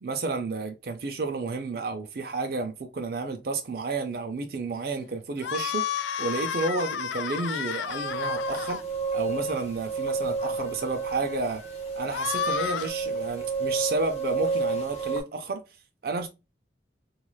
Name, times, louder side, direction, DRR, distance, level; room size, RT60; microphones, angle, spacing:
voice 1, 0.0-5.8 6.2-8.8 9.1-11.6 12.0-15.6 16.0-16.3, right 3 dB, 55° right, 0.4 m, -31 dB
sound 1, 5.4-8.8 12.1-12.9, left 8 dB, 90° left, 0.4 m, -31 dB
sound 2, 7.9-15.2, right 4 dB, 35° left, 0.8 m, -31 dB
3.0 x 2.4 x 2.2 m
head